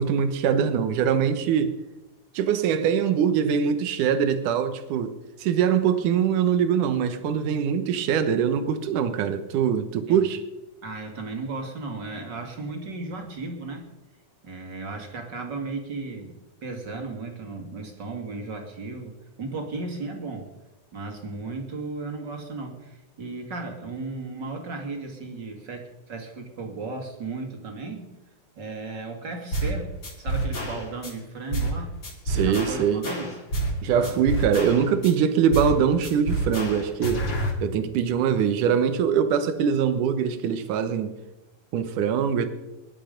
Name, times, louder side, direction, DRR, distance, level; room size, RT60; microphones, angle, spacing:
voice 1, 0.0-1.8 2.3-5.1 5.4-10.4 32.3-33.1 33.8-37.3 37.6-41.1 41.7-42.5, right 7 dB, 80° right, 10 dB, 2.6 m, -23 dB
voice 2, 10.8-13.9 14.4-20.5 20.9-28.1 28.5-31.9 32.3-33.4 34.0-34.2, right 3 dB, 35° right, 3 dB, 2.6 m, -35 dB
sound 1, 29.5-29.8 30.0-31.1 31.5-31.8 32.0-33.8 34.0-35.1 35.5-35.8 36.0-37.5, right 1 dB, 35° left, 3.5 m, -28 dB
23.0 x 11.0 x 5.2 m, 1.0 s
omnidirectional pair, 3.6 m